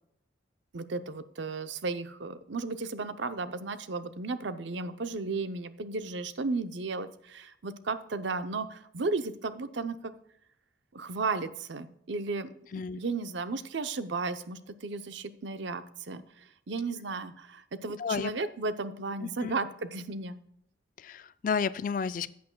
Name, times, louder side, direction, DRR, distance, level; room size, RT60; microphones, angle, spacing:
voice 1, 0.7-10.1 10.9-12.5 12.9-20.4, right 3 dB, 70° right, 11 dB, 0.6 m, -34 dB
voice 2, 18.0-18.3 19.2-19.6 21.0-22.3, left 6 dB, 45° left, 16 dB, 0.3 m, -32 dB
14.0 x 8.6 x 2.3 m, 0.72 s
head